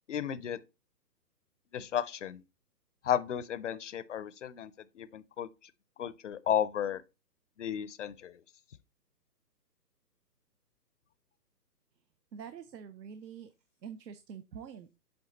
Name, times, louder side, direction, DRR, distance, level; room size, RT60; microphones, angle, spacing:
voice 1, 0.1-0.6 1.7-2.4 3.0-5.5 6.0-7.0 7.6-8.4, left 9 dB, 50° left, 0.5 m, -33 dB
voice 2, 12.3-13.5 13.8-14.9, right 7 dB, 80° right, 0.9 m, -45 dB
7.9 x 3.6 x 3.9 m
hypercardioid pair, 155°, 50 cm